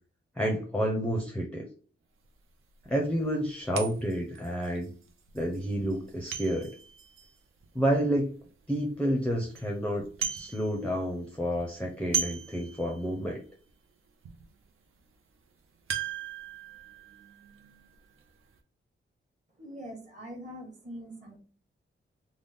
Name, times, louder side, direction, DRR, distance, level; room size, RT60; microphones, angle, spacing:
voice 1, 0.4-1.6 2.9-4.9 5.3-6.7 7.7-8.4 8.7-10.0 10.3-13.4, equal, 5° left, -1 dB, 0.5 m, -29 dB
sound 1, 2.3-2.4 2.8-2.9 3.7-8.4 8.9-9.0 9.3-9.7 10.0-11.1 11.3-13.3 13.7-13.8 14.2-14.4 15.9-18.3 18.5-18.6, right 7 dB, 75° right, 0.6 m, -37 dB
voice 2, 19.6-21.4, equal, 35° right, 0 dB, 1.1 m, -43 dB
3.9 x 2.0 x 3.4 m, 0.40 s
wide cardioid pair, 180°, 21 cm